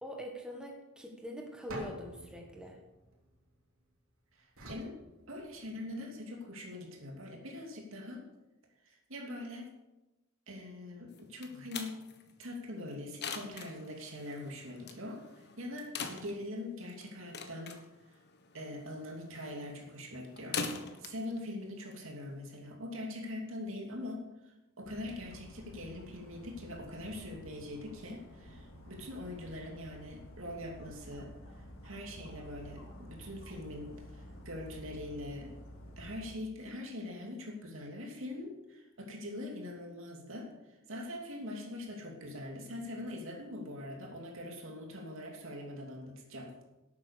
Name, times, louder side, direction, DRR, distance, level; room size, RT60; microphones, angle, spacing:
voice 1, 0.0-2.8, equal, 5° right, 1 dB, 1.5 m, -43 dB
sound 1, 1.7-3.9 4.6-5.9, right 1 dB, 85° right, 3.1 m, -48 dB
voice 2, 4.3-5.0 5.3-8.2 8.8-9.7 10.5-12.1 12.4-17.8 18.1-18.2 18.5-20.6 21.0-35.5 36.0-46.6, left 1 dB, 70° right, 1 dB, 2.8 m, -43 dB
sound 2, 11.1-22.6, left 5 dB, 55° left, 1.3 m, -44 dB
Dog, 24.8-36.4, equal, 70° left, 2.3 m, -51 dB
12.0 x 8.6 x 6.7 m, 1.0 s
head